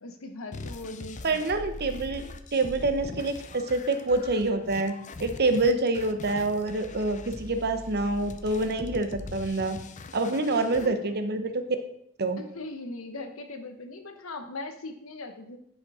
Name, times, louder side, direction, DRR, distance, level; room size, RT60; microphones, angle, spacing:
voice 1, 0.0-1.5 10.4-11.1 12.4-15.6, left 2 dB, 80° left, 6 dB, 1.1 m, -40 dB
sound 1, 0.5-10.9, left 3 dB, 35° left, 0.5 m, -42 dB
voice 2, 1.2-2.2 2.5-9.8 10.1-11.5 12.2-12.4, right 2 dB, 50° right, 8 dB, 0.9 m, -26 dB
9.9 x 5.4 x 4.9 m, 0.71 s
head